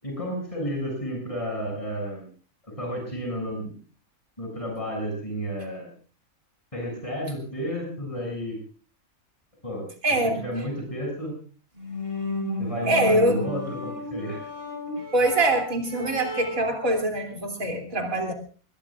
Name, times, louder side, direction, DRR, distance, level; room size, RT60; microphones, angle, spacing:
voice 1, 0.0-2.3 2.6-3.7 4.4-5.9 6.7-8.6 9.6-9.9 10.4-11.3 12.6-14.4, equal, 25° left, -1 dB, 6.9 m, -32 dB
voice 2, 10.0-10.4 12.9-13.4 15.1-18.3, right 1 dB, 75° right, 2 dB, 3.5 m, -23 dB
sound 1, 11.8-16.8, left 1 dB, 40° right, 5.7 m, -33 dB
21.5 x 21.0 x 2.5 m, 0.39 s
omnidirectional pair, 1.5 m